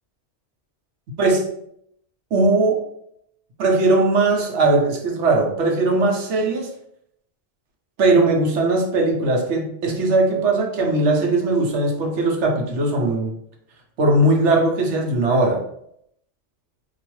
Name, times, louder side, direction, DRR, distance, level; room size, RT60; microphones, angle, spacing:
voice 1, 2.3-2.8 3.6-6.7 8.0-13.3 14.0-15.6, right 2 dB, 80° right, 1 dB, 1.1 m, -19 dB
4.6 x 2.5 x 3.0 m, 0.73 s
omnidirectional pair, 1.2 m